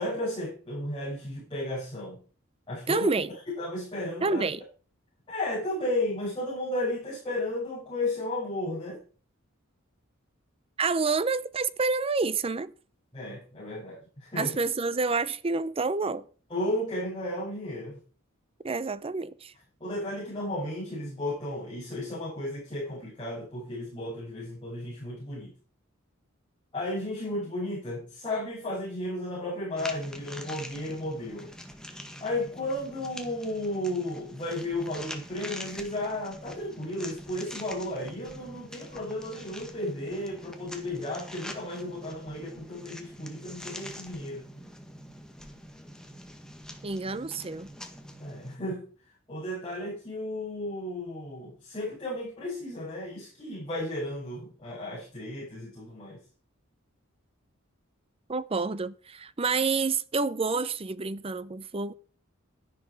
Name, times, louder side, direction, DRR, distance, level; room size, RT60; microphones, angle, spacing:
voice 1, 0.0-2.2 2.7-3.1 3.5-4.4 5.3-9.0 13.1-14.5 16.5-18.0 19.8-25.5 26.7-31.5 32.2-44.5 48.2-48.9 49.3-56.2, left 1 dB, 25° left, 6.8 m, -34 dB
voice 2, 2.9-3.3 4.2-4.6 10.8-12.7 14.4-16.3 18.6-19.5 46.8-47.7 58.3-61.9, right 4 dB, 30° right, 0.6 m, -28 dB
sound 1, 29.8-48.6, equal, 5° left, 1.7 m, -44 dB
12.5 x 11.0 x 4.7 m
head